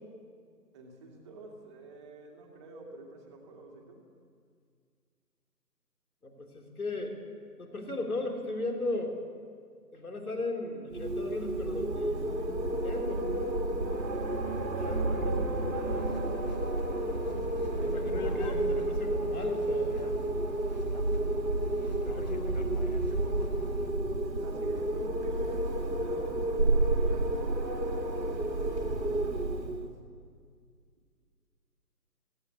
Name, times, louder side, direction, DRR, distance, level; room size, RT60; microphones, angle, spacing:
voice 1, 0.7-4.0 21.6-30.0, right 2 dB, 15° right, 0 dB, 2.2 m, -49 dB
voice 2, 6.2-7.2 7.6-9.2 9.9-13.3 13.6-14.2 14.7-16.1 17.8-20.0 22.2-22.6, left 2 dB, 60° left, 3 dB, 3.9 m, -37 dB
Wind, 10.9-29.9, right 2 dB, 90° right, 2.4 m, -31 dB
sound 1, 15.8-23.9, left 2 dB, 25° left, 0.9 m, -44 dB
17.0 x 16.5 x 9.6 m, 2.1 s
figure-of-eight pair, 155°, 50 cm